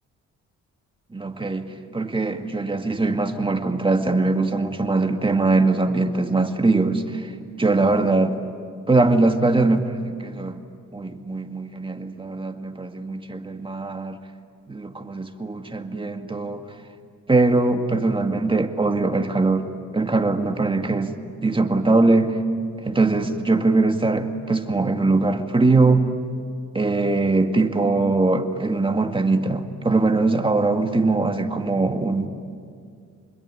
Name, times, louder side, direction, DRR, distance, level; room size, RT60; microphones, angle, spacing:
voice 1, 1.1-7.3 7.6-8.4 8.9-10.6 10.9-14.2 14.7-16.6 17.3-19.7 19.9-21.1 21.4-22.4 22.8-26.1 26.7-32.3, right 3 dB, 15° right, 5 dB, 2.0 m, -21 dB
27.5 x 21.5 x 9.6 m, 2.2 s
cardioid pair, 90°, 30 cm